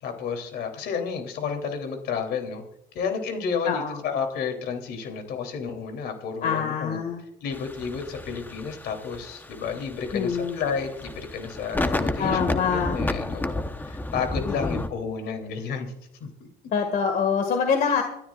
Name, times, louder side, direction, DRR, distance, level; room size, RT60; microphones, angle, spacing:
voice 1, 0.0-2.6 2.9-7.0 7.4-15.9 16.2-16.3, left 6 dB, 75° left, 5 dB, 3.2 m, -31 dB
voice 2, 3.6-4.0 6.4-7.2 10.1-10.6 12.2-13.0 14.4-14.8 16.7-18.0, left 6 dB, 60° left, 5 dB, 1.9 m, -25 dB
sound 1, 7.5-14.9, left 2 dB, 10° left, 1.0 m, -31 dB
25.5 x 13.0 x 2.5 m, 0.82 s
cardioid pair, 110°, 17 cm